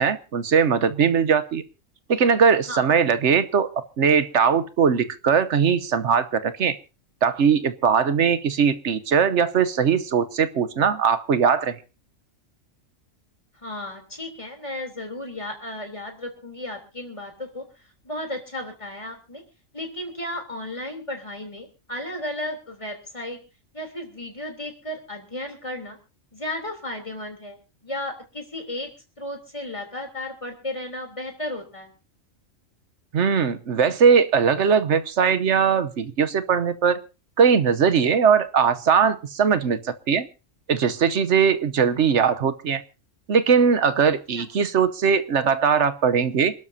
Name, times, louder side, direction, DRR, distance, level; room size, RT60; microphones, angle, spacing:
voice 1, 0.0-1.6 2.1-6.8 7.2-11.8 33.1-37.0 37.4-40.3 40.7-42.8 43.3-46.5, right 6 dB, 65° right, 13 dB, 1.2 m, -20 dB
voice 2, 13.5-19.4 19.7-23.4 23.7-26.0 26.3-28.9 29.2-31.9 44.3-44.5, left 1 dB, 25° left, 3 dB, 3.5 m, -34 dB
27.5 x 12.5 x 2.8 m, 0.32 s
omnidirectional pair, 1.3 m